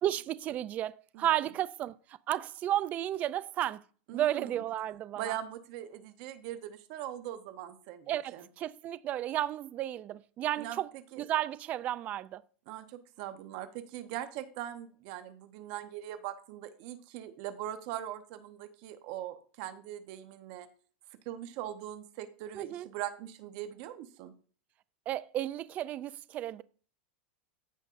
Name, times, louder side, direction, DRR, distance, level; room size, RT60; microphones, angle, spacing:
voice 1, 0.0-3.8 4.1-5.3 8.1-10.9 11.2-12.4 22.5-22.9 25.1-26.6, right 12 dB, 25° right, 0.3 m, -33 dB
voice 2, 4.1-4.6 5.2-8.5 10.6-11.2 12.7-20.7 21.2-24.3, right 12 dB, 45° right, 0.9 m, -41 dB
14.5 x 5.2 x 2.5 m
supercardioid pair, 160°, 6 cm